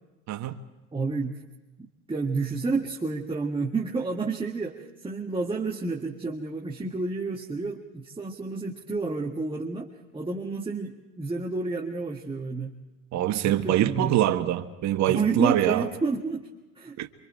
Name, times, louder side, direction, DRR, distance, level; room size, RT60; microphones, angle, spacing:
voice 1, 0.9-1.4 1.8-12.7 13.4-14.2 15.1-16.5 16.8-17.0, right 3 dB, 15° right, 1.8 m, -30 dB
voice 2, 13.1-15.8 17.0-17.1, right 12 dB, 45° right, 1.4 m, -24 dB
28.0 x 25.0 x 4.5 m
hypercardioid pair, 70°, 39 cm